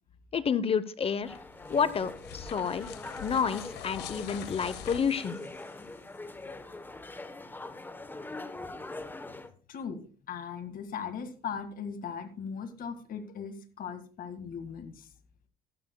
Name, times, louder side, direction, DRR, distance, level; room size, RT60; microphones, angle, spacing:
voice 1, 0.3-1.3 1.7-2.9 3.2-5.4, left 6 dB, 35° left, 15 dB, 0.7 m, -29 dB
sound 1, 1.2-6.2, left 10 dB, 90° left, 1.0 m, -45 dB
sound 2, 1.2-9.5, left 2 dB, 10° left, 0.9 m, -43 dB
voice 2, 9.7-15.1, left 6 dB, 55° left, 9 dB, 1.8 m, -39 dB
15.0 x 12.0 x 2.2 m, 0.39 s
cardioid pair, 110°, 17 cm